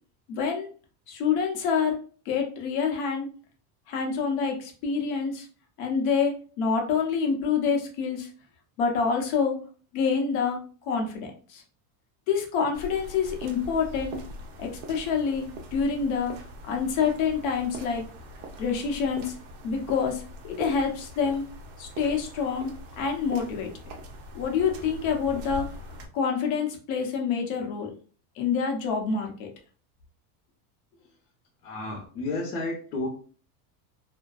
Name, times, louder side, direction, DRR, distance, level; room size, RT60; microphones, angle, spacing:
voice 1, 0.3-0.7 1.1-2.0 2.3-3.3 3.9-5.5 5.8-8.3 8.8-9.6 9.9-11.6 12.3-14.2 14.6-16.3 16.7-18.0 18.6-19.4 19.6-20.2 20.6-21.5 21.8-23.7 24.3-25.7 26.1-27.9 28.4-29.5, left 6 dB, 60° left, 2 dB, 0.9 m, -27 dB
sound 1, 12.7-26.1, equal, 50° right, 0.6 m, -42 dB
voice 2, 31.6-33.1, left 2 dB, 85° left, -2 dB, 0.9 m, -32 dB
2.6 x 2.2 x 2.3 m, 0.40 s
supercardioid pair, 150°, 46 cm